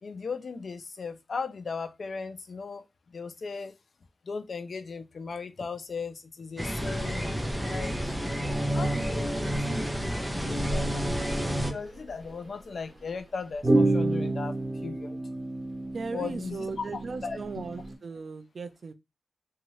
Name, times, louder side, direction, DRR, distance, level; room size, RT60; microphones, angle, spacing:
voice 1, 0.0-2.9 3.1-3.7 4.3-7.9 8.7-14.6 14.8-15.2 16.1-16.7 16.9-17.4, left 4 dB, 60° left, 0.5 m, -37 dB
sound 1, 6.6-11.7, equal, 5° right, 0.6 m, -29 dB
voice 2, 8.9-9.2 15.9-18.9, right 4 dB, 60° right, 0.4 m, -37 dB
sound 2, 10.5-10.6 10.9-11.1 11.9-12.3 13.6-17.9, right 2 dB, 30° right, 1.0 m, -29 dB
2.7 x 2.4 x 3.0 m
wide cardioid pair, 135°, 0 cm